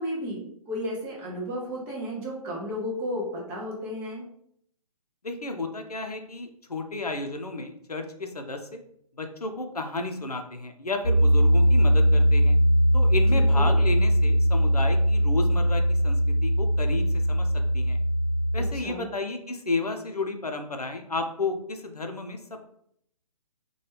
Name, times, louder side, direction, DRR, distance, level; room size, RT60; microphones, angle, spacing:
voice 1, 0.0-4.2 13.3-13.8 18.6-19.1, equal, 10° right, -3 dB, 0.5 m, -33 dB
voice 2, 5.2-8.8 9.2-12.6 12.9-18.0 18.5-22.4, left 2 dB, 90° left, 5 dB, 0.5 m, -32 dB
Piano, 11.0-18.7, equal, 25° left, 0.9 m, -21 dB
2.9 x 2.3 x 3.2 m, 0.69 s
figure-of-eight pair, 135°, 19 cm